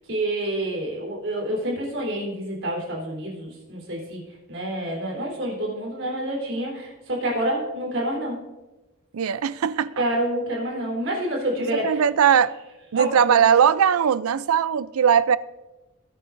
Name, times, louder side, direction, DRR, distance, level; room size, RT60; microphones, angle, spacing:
voice 1, 0.1-4.2 4.5-8.4 10.0-12.0 12.9-13.5, right 1 dB, 60° right, 3.8 m, -28 dB
voice 2, 9.1-10.0 11.8-12.5 12.9-15.4, right 8 dB, 75° right, 0.4 m, -19 dB
20.0 x 9.2 x 2.6 m
head